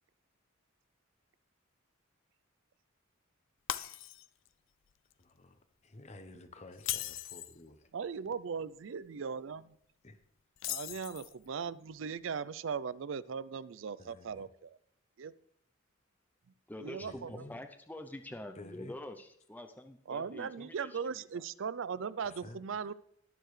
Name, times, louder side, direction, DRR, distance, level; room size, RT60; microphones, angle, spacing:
Shatter, 3.7-4.5 4.9-5.1 6.7-7.6 10.6-11.5, left 13 dB, 65° left, 0.5 m, -38 dB
voice 1, 5.2-7.9 10.0-10.2 14.0-14.5 17.0-17.6 18.3-19.0 22.2-22.9, left 2 dB, 35° left, 9 dB, 0.9 m, -52 dB
voice 2, 7.9-9.7 10.7-14.8 15.2-15.3 16.8-17.4 20.1-22.9, right 6 dB, 65° right, 18 dB, 0.4 m, -38 dB
voice 3, 16.7-21.4, left 1 dB, 10° left, 7 dB, 0.5 m, -46 dB
20.0 x 6.8 x 3.2 m, 0.72 s
head